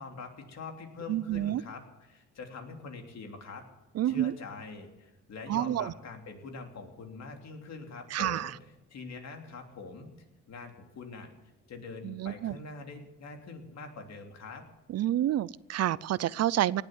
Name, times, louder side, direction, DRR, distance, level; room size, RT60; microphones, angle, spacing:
voice 1, 0.0-1.8 2.1-3.6 4.0-8.5 8.9-10.1 10.5-11.3 11.7-14.6, left 4 dB, 60° left, 4 dB, 3.2 m, -44 dB
voice 2, 1.1-1.6 3.9-4.3 5.5-5.9 8.1-8.5 12.0-12.6 14.9-16.8, right 12 dB, 55° right, 21 dB, 0.5 m, -29 dB
18.0 x 8.2 x 9.6 m, 1.0 s
cardioid pair, 90°, 30 cm